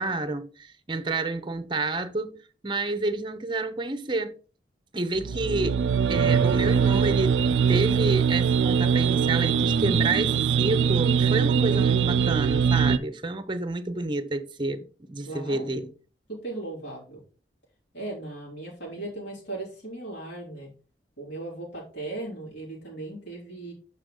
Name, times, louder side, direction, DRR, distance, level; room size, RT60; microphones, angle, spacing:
voice 1, 0.0-2.4 2.6-4.3 4.9-5.8 6.1-7.4 7.7-15.9, right 2 dB, 25° right, 0.6 m, -29 dB
sound 1, 5.2-13.0, right 7 dB, 85° right, 0.4 m, -22 dB
voice 2, 15.3-15.9 16.3-17.2 17.9-20.7 21.2-23.7, right 2 dB, 85° left, 3.6 m, -37 dB
6.8 x 5.4 x 3.7 m
head